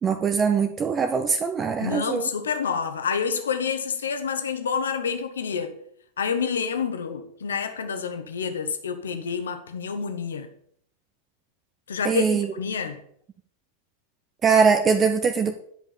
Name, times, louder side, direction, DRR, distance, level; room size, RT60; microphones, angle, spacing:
voice 1, 0.0-2.3 12.0-12.5 14.4-15.5, right 5 dB, 20° right, 0.8 m, -22 dB
voice 2, 1.8-5.7 6.2-10.5 11.9-13.0, left 6 dB, 65° left, 1.3 m, -28 dB
10.5 x 5.3 x 7.1 m
figure-of-eight pair, 90°, 0 cm